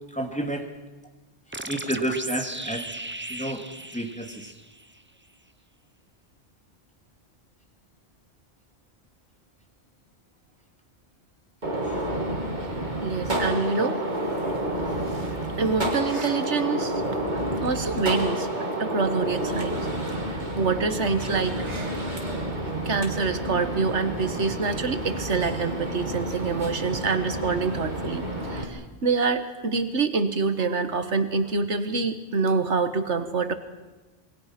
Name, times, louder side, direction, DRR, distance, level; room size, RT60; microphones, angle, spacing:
voice 1, 0.1-0.7 1.6-2.9 3.3-3.7 3.9-4.5, right 1 dB, 5° left, 2 dB, 2.7 m, -30 dB
sound 1, 1.5-5.0, right 2 dB, 10° right, 0.7 m, -36 dB
Gunshot gunfire, 11.6-28.6, right 1 dB, 40° right, 3.2 m, -30 dB
voice 2, 13.0-14.0 15.1-17.0 17.6-18.5 18.8-19.8 20.2-22.0 22.9-33.5, right 4 dB, 75° right, 10 dB, 1.8 m, -26 dB
27.5 x 22.0 x 6.0 m, 1.1 s
omnidirectional pair, 1.2 m